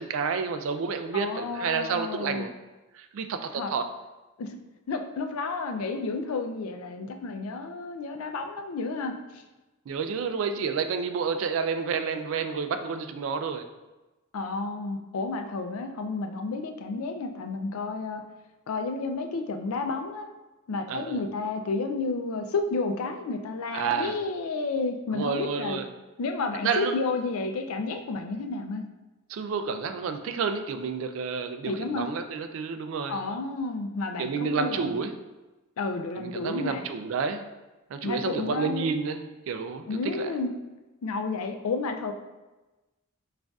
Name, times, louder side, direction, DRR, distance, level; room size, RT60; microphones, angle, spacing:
voice 1, 0.0-2.5 2.9-3.8 9.9-13.6 20.9-21.2 23.7-24.1 25.1-25.8 26.6-27.0 29.3-33.2 34.2-35.1 36.2-37.4 37.9-40.3, right 5 dB, 60° right, 8 dB, 0.3 m, -30 dB
voice 2, 1.1-2.5 3.5-3.7 4.4-4.6 4.9-9.4 14.3-18.2 18.7-20.3 20.7-25.8 26.2-28.8 31.6-32.1 33.1-35.0 35.8-36.8 38.0-38.9 39.9-40.5 41.0-42.1, left 3 dB, 75° left, 5 dB, 0.4 m, -31 dB
6.1 x 2.5 x 2.3 m, 1.1 s
head